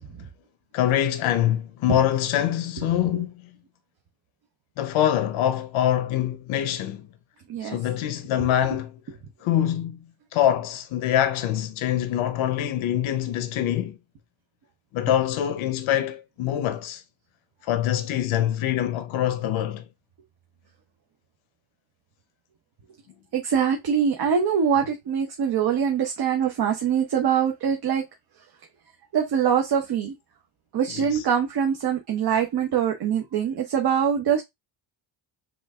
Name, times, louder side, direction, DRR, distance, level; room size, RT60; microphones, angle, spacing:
voice 1, 0.7-3.3 4.8-7.1 7.6-9.0 9.4-10.0 10.3-14.0 14.9-17.0 17.7-19.8 30.9-31.2, left 11 dB, 80° left, 0.8 m, -24 dB
voice 2, 23.3-28.0 29.1-30.1 30.7-34.4, right 8 dB, 50° right, 0.9 m, -23 dB
5.9 x 2.5 x 3.5 m
cardioid pair, 130°, 48 cm